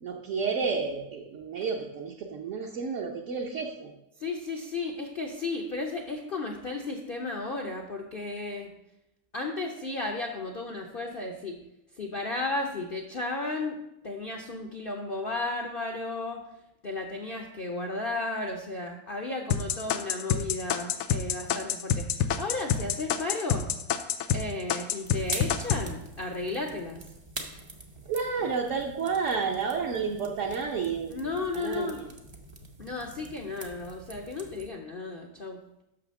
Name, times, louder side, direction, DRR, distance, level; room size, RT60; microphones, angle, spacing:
voice 1, 0.0-3.9 28.1-31.1 31.5-32.0, right 5 dB, 60° right, 0 dB, 1.0 m, -31 dB
voice 2, 4.2-8.7 9.3-11.6 11.9-13.8 14.0-16.4 16.8-22.1 22.4-23.7 24.3-27.1 28.4-28.5 31.1-32.1 32.8-35.6, left 3 dB, 55° left, 2 dB, 0.6 m, -34 dB
sound 1, 19.5-24.4 24.7-25.8, left 8 dB, 85° left, 1.2 m, -26 dB
sound 2, 25.0-34.7, right 2 dB, 30° right, 0.4 m, -44 dB
6.1 x 5.8 x 6.3 m, 0.87 s
omnidirectional pair, 1.8 m